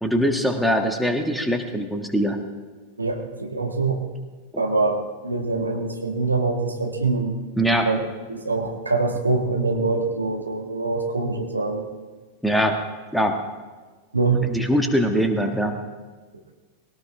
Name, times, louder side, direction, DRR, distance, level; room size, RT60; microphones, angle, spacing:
voice 1, 0.0-2.4 7.6-7.9 12.4-12.8 13.1-13.4 14.5-15.7, equal, ahead, 4 dB, 1.6 m, -22 dB
voice 2, 3.0-4.0 4.6-5.0 5.2-7.4 7.8-8.0 8.3-11.9 14.1-14.4, right 3 dB, 80° right, 3 dB, 1.7 m, -24 dB
20.5 x 18.0 x 3.5 m, 1.4 s
figure-of-eight pair, 90°, 0 cm